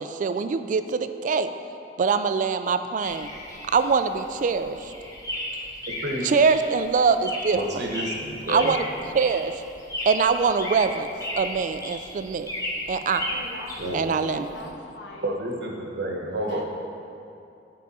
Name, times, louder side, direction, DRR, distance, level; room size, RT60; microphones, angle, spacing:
voice 1, 0.0-1.5 2.0-3.3 3.7-4.9 6.2-7.6 8.5-8.8 9.1-9.6 10.1-11.1 11.4-12.5 12.9-13.3 13.9-14.5, right 5 dB, 45° right, 10 dB, 0.3 m, -23 dB
sound 1, 3.0-14.7, left 1 dB, 20° left, 1.1 m, -35 dB
voice 2, 6.0-6.3 7.5-8.8 13.8-14.0 15.2-16.6, right 1 dB, 65° right, 0 dB, 1.1 m, -30 dB
voice 3, 13.3-13.8 14.3-15.4 16.4-16.6, left 2 dB, 75° left, 1 dB, 0.9 m, -41 dB
10.5 x 4.8 x 4.2 m, 2.7 s
head